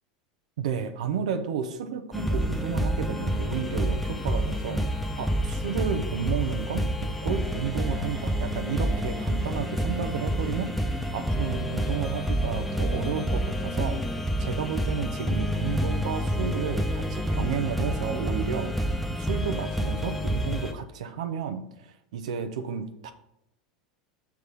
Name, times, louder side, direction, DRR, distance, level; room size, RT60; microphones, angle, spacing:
voice 1, 0.6-4.8 5.2-10.7 11.1-18.7 19.2-23.1, right 7 dB, 70° right, 8 dB, 0.7 m, -32 dB
sound 1, 2.1-20.7, equal, ahead, 0.9 m, -28 dB
6.7 x 3.5 x 6.1 m, 0.84 s
hypercardioid pair, 90°, 4 cm